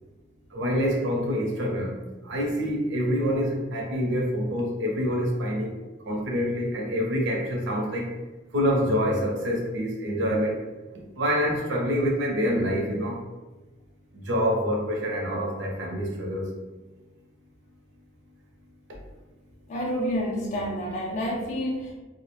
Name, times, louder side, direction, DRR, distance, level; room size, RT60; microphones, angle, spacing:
voice 1, 0.5-1.9 2.2-5.7 6.1-8.1 8.5-10.6 11.2-13.2 14.1-16.5, equal, 65° right, -1 dB, 0.6 m, -26 dB
voice 2, 19.7-21.9, equal, 35° left, -3 dB, 0.3 m, -29 dB
2.3 x 2.0 x 2.9 m, 1.2 s
head